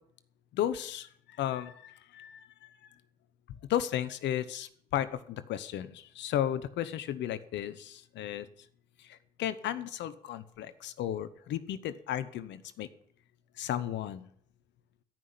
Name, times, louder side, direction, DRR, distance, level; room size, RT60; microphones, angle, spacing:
voice 1, 0.5-1.1 1.4-2.7 3.7-8.5 9.1-12.9 13.6-14.3, left 11 dB, 80° left, 14 dB, 0.9 m, -34 dB
14.0 x 6.0 x 9.8 m, 0.65 s
supercardioid pair, 45°, 18 cm